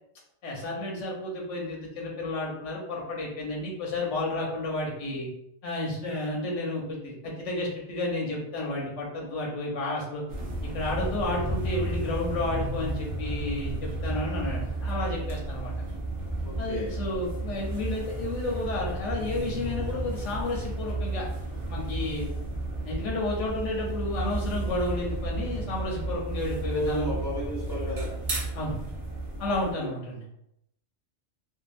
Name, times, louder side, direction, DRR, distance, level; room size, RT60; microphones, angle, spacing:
voice 1, 0.4-5.3 5.6-10.2 10.7-15.7 16.6-21.3 21.7-22.3 22.8-27.2 28.5-28.8 29.4-30.2, left 2 dB, 85° left, -2 dB, 1.1 m, -31 dB
sound 1, 10.3-29.7, right 2 dB, 45° right, 0.4 m, -33 dB
voice 2, 16.4-16.9 26.7-28.1, equal, 25° left, -6 dB, 0.5 m, -33 dB
2.7 x 2.4 x 2.4 m, 0.80 s
omnidirectional pair, 1.2 m